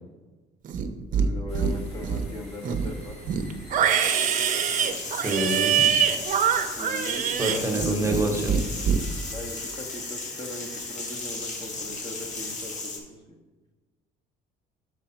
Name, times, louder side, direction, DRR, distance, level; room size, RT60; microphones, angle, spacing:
Livestock farm animals working animals, 0.7-1.3 1.6-2.3 2.6-8.2 8.5-9.0, right 8 dB, 50° right, 0.6 m, -24 dB
voice 1, 1.1-3.2 6.6-8.3 9.3-13.4, left 1 dB, 25° left, 2 dB, 0.9 m, -39 dB
sound 1, 1.5-12.8, left 2 dB, 90° left, 2.2 m, -48 dB
sound 2, 4.0-13.0, left 3 dB, 45° left, 1.2 m, -35 dB
voice 2, 5.0-5.9 7.4-8.6, right 2 dB, 15° right, 1 dB, 1.0 m, -27 dB
6.7 x 4.8 x 4.3 m, 1.3 s
cardioid pair, 110°, 17 cm